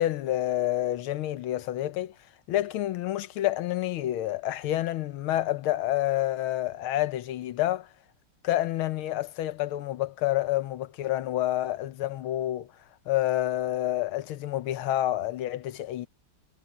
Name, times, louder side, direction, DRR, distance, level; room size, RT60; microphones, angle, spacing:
voice 1, 0.0-2.1 2.5-7.9 8.4-12.7 13.1-16.1, left 14 dB, 80° left, 1.7 m, -28 dB
omnidirectional pair, 2.3 m